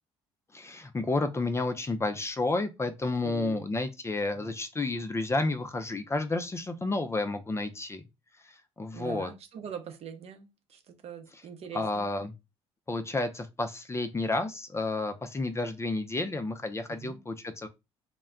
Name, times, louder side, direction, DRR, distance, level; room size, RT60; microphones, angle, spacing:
voice 1, 0.5-8.0 8.8-9.3 11.7-12.3 12.9-17.7, left 2 dB, 20° left, 0.5 m, -31 dB
voice 2, 3.2-3.6 4.3-4.5 8.9-12.1 16.9-17.2, right 7 dB, 50° right, 0.7 m, -43 dB
2.1 x 2.1 x 3.6 m
supercardioid pair, 70°, 13 cm